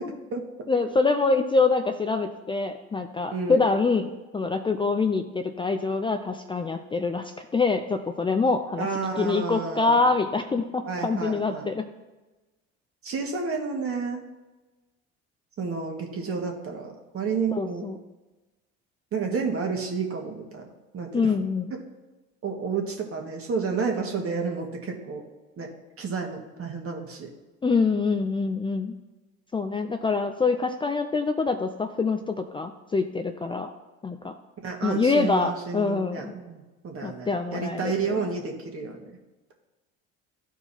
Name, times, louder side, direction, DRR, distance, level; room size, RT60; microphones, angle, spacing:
voice 1, 0.7-8.9 9.2-11.9 17.5-18.0 21.1-21.8 27.6-28.9 29.5-33.7 34.0-34.3 34.8-36.3 37.0-38.2, left 4 dB, 15° left, 6 dB, 0.4 m, -25 dB
voice 2, 3.3-3.6 8.8-10.0 10.9-11.7 13.0-14.2 15.6-17.8 19.1-20.6 20.9-21.3 22.4-25.2 25.6-25.7 26.0-27.3 34.6-39.1, right 5 dB, 45° right, 1 dB, 1.8 m, -30 dB
13.5 x 4.5 x 2.8 m, 1.2 s
supercardioid pair, 85°, 31 cm